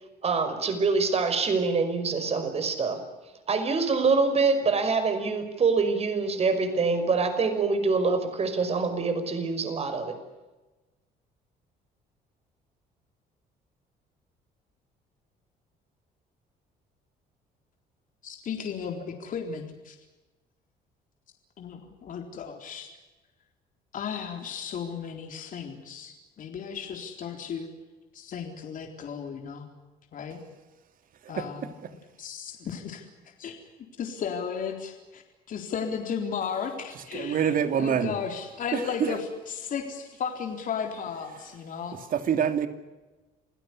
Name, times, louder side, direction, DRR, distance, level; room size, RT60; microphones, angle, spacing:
voice 1, 0.2-3.0 3.5-10.2, right 4 dB, 35° right, 9 dB, 5.5 m, -25 dB
voice 2, 18.2-20.0 21.6-23.0 23.9-27.7 28.1-29.7 30.1-30.4 31.3-31.7 32.2-33.1 33.4-33.6 34.0-42.0, left 6 dB, 50° left, 4 dB, 4.0 m, -35 dB
voice 3, 37.1-38.1 38.7-39.2 42.1-42.7, right 8 dB, 55° right, 9 dB, 2.8 m, -26 dB
27.5 x 17.0 x 9.9 m, 1.1 s
cardioid pair, 110°, 17 cm